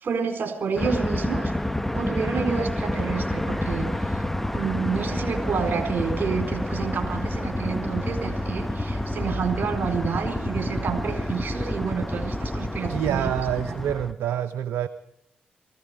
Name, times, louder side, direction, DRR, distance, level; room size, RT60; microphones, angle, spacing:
voice 1, 0.0-1.5 1.9-4.2 4.5-13.3 13.6-13.7, right 6 dB, 55° right, 5 dB, 4.2 m, -29 dB
sound 1, 0.8-14.1, left 1 dB, 5° left, 0.9 m, -28 dB
voice 2, 12.9-14.9, right 10 dB, 75° right, 11 dB, 0.7 m, -27 dB
18.0 x 16.0 x 5.0 m, 0.76 s
hypercardioid pair, 45°, 4 cm